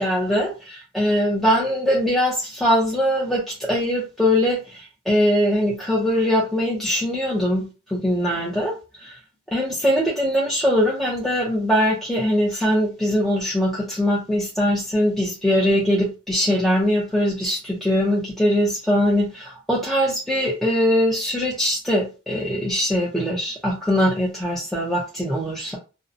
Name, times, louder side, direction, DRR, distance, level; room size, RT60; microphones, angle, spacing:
voice 1, 0.0-9.1 9.5-25.8, equal, ahead, -5 dB, 0.4 m, -22 dB
2.5 x 2.0 x 2.5 m, 0.31 s
head